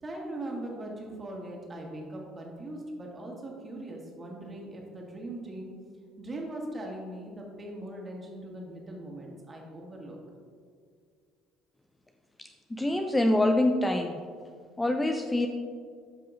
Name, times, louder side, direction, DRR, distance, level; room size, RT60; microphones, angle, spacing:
voice 1, 0.0-5.7 6.2-10.2, right 1 dB, 25° right, -1 dB, 1.7 m, -40 dB
voice 2, 12.4-14.2 14.8-15.5, left 1 dB, 15° left, 5 dB, 0.5 m, -26 dB
12.5 x 5.5 x 2.6 m, 2.1 s
figure-of-eight pair, 55°, 0 cm